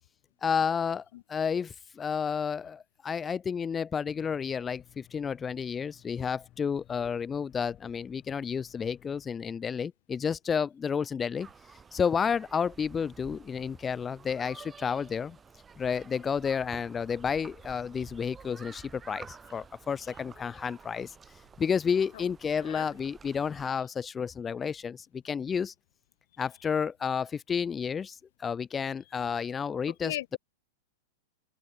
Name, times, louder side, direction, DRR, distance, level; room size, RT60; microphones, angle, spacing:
voice 1, 0.4-11.5 11.9-15.4 15.8-21.2 21.6-25.7 26.4-30.4, left 6 dB, 20° left, 0.6 m, -31 dB
sound 1, 4.1-9.3, left 14 dB, 35° left, 5.9 m, -58 dB
sound 2, 11.4-23.7, right 6 dB, 15° right, 4.9 m, -51 dB
voice 2, 22.6-22.9 30.0-30.4, left 14 dB, 65° left, 3.0 m, -37 dB
open air
hypercardioid pair, 135°, 0 cm